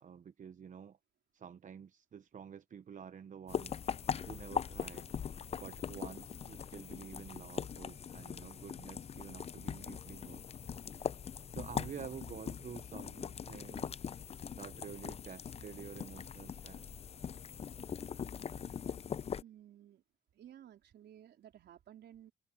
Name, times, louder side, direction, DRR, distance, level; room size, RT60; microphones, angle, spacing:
voice 1, 0.0-1.0 1.3-3.8 4.3-5.1 5.6-10.4 11.5-13.9 14.6-16.9, right 8 dB, 45° right, 0.8 m, -49 dB
sound 1, 3.5-19.4, left 7 dB, 35° left, 0.5 m, -41 dB
voice 2, 19.4-20.0 20.3-22.3, right 11 dB, 70° right, 3.7 m, -55 dB
cardioid pair, 90°, 18 cm